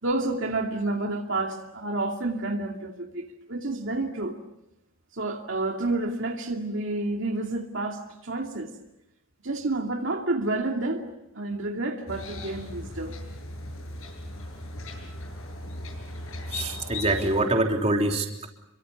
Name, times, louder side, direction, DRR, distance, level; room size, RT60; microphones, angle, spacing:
voice 1, 0.0-4.3 5.1-8.7 9.4-11.0 11.3-13.2, right 2 dB, 65° right, 2 dB, 2.4 m, -29 dB
sound 1, 12.1-17.4, left 2 dB, 75° left, 7.4 m, -37 dB
voice 2, 16.5-18.5, right 2 dB, 30° right, 2 dB, 3.4 m, -25 dB
29.5 x 24.0 x 7.1 m, 0.87 s
head